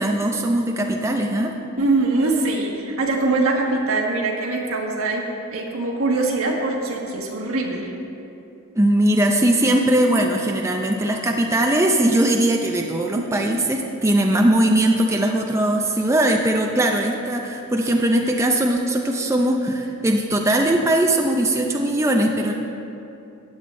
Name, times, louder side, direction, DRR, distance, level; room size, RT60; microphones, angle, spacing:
voice 1, 0.0-1.5 8.8-22.5, right 1 dB, 15° right, 1 dB, 0.5 m, -20 dB
voice 2, 1.8-5.2 5.5-7.9 13.1-13.3, right 2 dB, 75° right, 0 dB, 1.4 m, -23 dB
14.5 x 9.3 x 3.2 m, 2.8 s
head